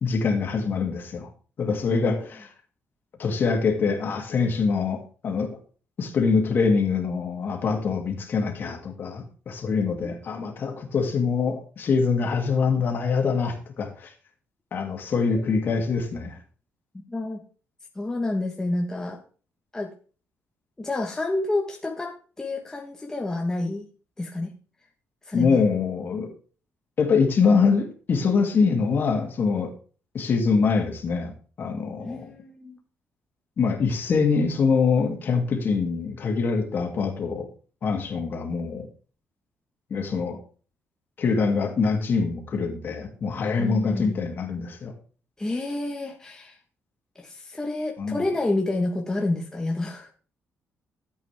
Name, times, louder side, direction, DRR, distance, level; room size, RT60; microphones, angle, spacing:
voice 1, 0.0-1.3 1.6-2.5 3.2-5.6 6.0-14.1 14.7-16.4 25.3-26.3 27.0-29.7 30.1-31.3 31.6-32.3 33.6-37.5 37.8-38.9 39.9-40.4 41.2-44.9 48.0-48.3, left 5 dB, 45° left, 2 dB, 2.5 m, -24 dB
voice 2, 1.9-2.3 16.9-17.4 17.9-19.2 19.7-19.9 20.8-23.8 24.2-24.5 25.3-25.6 32.0-32.8 43.6-44.2 45.4-46.6 47.1-50.1, left 2 dB, 10° left, 1 dB, 1.2 m, -29 dB
13.0 x 8.2 x 3.5 m, 0.39 s
cardioid pair, 140°, 5 cm